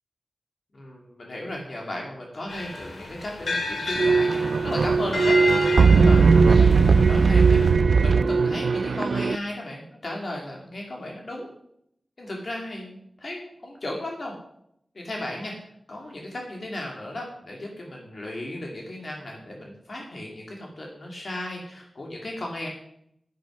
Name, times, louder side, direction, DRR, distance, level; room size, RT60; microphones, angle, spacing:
voice 1, 0.7-5.3 5.6-5.7 6.0-11.5 12.2-14.3 14.9-15.5 15.9-22.7, left 1 dB, 55° left, -1 dB, 2.7 m, -35 dB
sound 1, 2.5-7.7, left 2 dB, 85° left, 2.5 m, -31 dB
sound 2, 4.0-9.4, right 5 dB, 85° right, 0.4 m, -18 dB
10.5 x 9.5 x 6.2 m, 0.74 s
wide cardioid pair, 95°, 0 cm